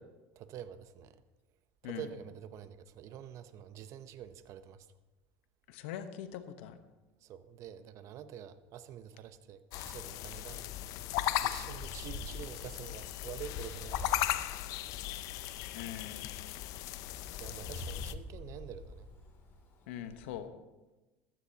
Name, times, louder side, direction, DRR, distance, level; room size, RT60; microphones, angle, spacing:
voice 1, 0.4-1.2 1.8-4.9 7.2-10.7 11.4-14.2 17.4-19.1, right 9 dB, 50° right, 11 dB, 0.8 m, -47 dB
voice 2, 5.7-6.8 15.7-16.3 19.9-20.5, left 10 dB, 85° left, 9 dB, 1.1 m, -42 dB
sound 1, 9.7-18.2, left 14 dB, 60° left, 0.6 m, -37 dB
Wind, 10.5-20.4, left 2 dB, 40° left, 2.8 m, -48 dB
15.0 x 13.5 x 2.9 m, 1.1 s
supercardioid pair, 115°, 7 cm